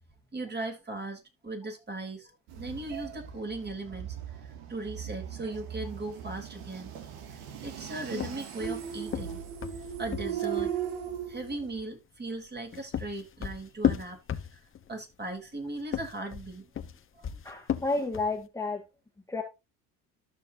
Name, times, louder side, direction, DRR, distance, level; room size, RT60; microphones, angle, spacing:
voice 1, 0.3-2.3 2.6-4.2 4.4-7.0 7.3-9.4 10.0-10.8 11.3-14.2 14.5-14.6 14.9-16.7 17.2-17.3, right 2 dB, 25° right, 3.5 m, -38 dB
sound 1, 2.5-11.8, right 9 dB, 90° right, 2.3 m, -38 dB
sound 2, 8.1-10.8 12.5-14.9 15.8-18.4, left 9 dB, 35° left, 1.0 m, -33 dB
voice 2, 17.4-18.8 19.3-19.4, left 3 dB, 10° left, 1.8 m, -31 dB
13.0 x 6.5 x 2.7 m
cardioid pair, 115°, 38 cm